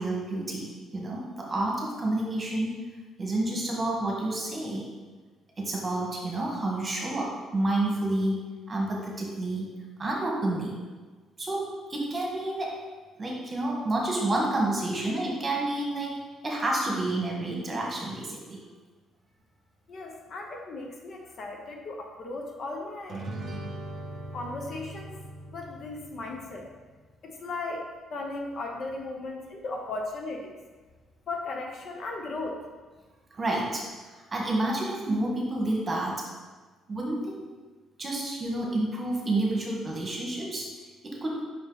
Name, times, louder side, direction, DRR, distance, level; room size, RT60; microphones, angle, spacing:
voice 1, 0.0-2.7 3.2-4.9 5.6-8.4 8.7-9.7 10.0-10.8 11.4-12.7 13.2-16.1 16.4-18.6 33.3-33.8 34.1-36.2 36.9-37.4 38.0-40.7 41.0-41.4, right 2 dB, 25° right, -2 dB, 1.4 m, -29 dB
voice 2, 19.9-23.3 24.3-25.1 25.4-26.7 27.2-30.6 31.3-32.6, left 2 dB, 45° left, 1 dB, 0.8 m, -36 dB
sound 1, 23.1-26.7, right 1 dB, 40° right, 0.8 m, -40 dB
5.5 x 5.3 x 4.0 m, 1.4 s
cardioid pair, 135°, 0 cm